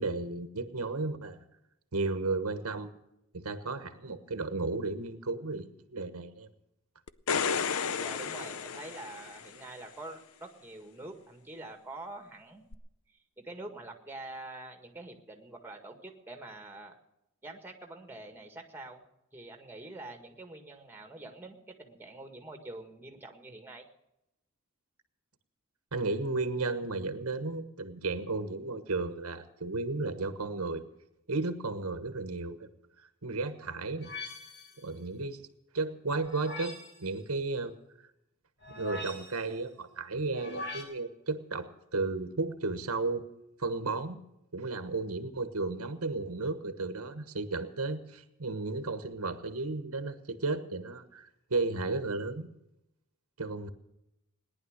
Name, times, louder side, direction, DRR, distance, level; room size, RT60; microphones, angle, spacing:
voice 1, 0.0-1.4 1.9-2.9 3.3-6.5 25.9-30.8 31.3-32.7 33.2-34.1 34.8-35.4 35.7-37.7 38.8-43.2 43.6-44.2 44.5-52.5 53.4-53.7, right 3 dB, 85° right, 10 dB, 1.3 m, -34 dB
sound 1, 7.1-9.6 12.7-12.8, left 6 dB, 70° left, 0.7 m, -32 dB
voice 2, 8.0-12.7 13.1-17.0 17.4-19.0 19.3-23.9, right 2 dB, 10° right, 4 dB, 1.8 m, -46 dB
sound 2, 34.0-34.8 36.2-37.0 38.6-39.5 40.3-40.8, left 2 dB, 55° left, 3.9 m, -42 dB
18.5 x 10.5 x 6.5 m, 0.86 s
head